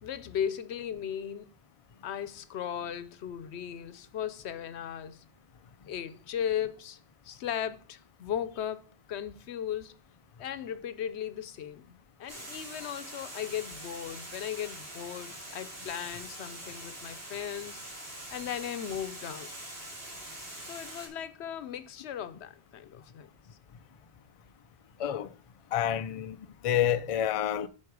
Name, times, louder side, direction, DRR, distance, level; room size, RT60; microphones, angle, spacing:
voice 1, 0.0-1.5 2.0-5.2 5.9-7.0 7.2-10.0 10.4-17.8 18.3-19.5 20.6-23.3, left 9 dB, 90° left, 1.0 m, -37 dB
Water, 12.3-21.1, right 1 dB, 65° right, 2.9 m, -44 dB
voice 2, 25.0-25.3 25.7-26.4 26.6-27.7, left 10 dB, 50° left, 0.4 m, -28 dB
8.5 x 4.9 x 4.7 m
omnidirectional pair, 1.1 m